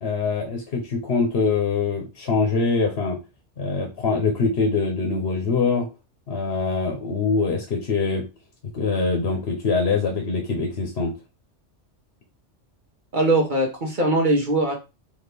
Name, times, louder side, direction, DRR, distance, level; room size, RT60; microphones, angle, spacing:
voice 1, 0.0-3.2 3.6-5.9 6.3-8.2 8.7-11.1, left 4 dB, 60° left, 2 dB, 1.1 m, -23 dB
voice 2, 13.1-14.8, right 2 dB, 45° right, 0 dB, 1.1 m, -21 dB
4.2 x 2.9 x 3.3 m, 0.28 s
omnidirectional pair, 1.2 m